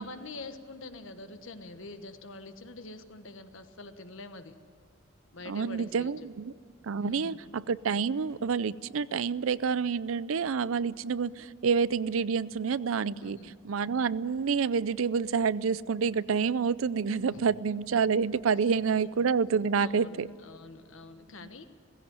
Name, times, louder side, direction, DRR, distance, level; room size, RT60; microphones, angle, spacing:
voice 1, 0.0-4.5 5.3-6.1 7.0-7.4 13.2-13.5 17.1-17.4 18.6-18.7 19.1-19.3 19.8-21.7, left 2 dB, 70° left, 8 dB, 1.3 m, -45 dB
voice 2, 5.5-6.5 6.8-13.4 13.6-20.3, right 6 dB, 80° right, 18 dB, 0.5 m, -28 dB
17.5 x 16.0 x 9.4 m, 2.3 s
head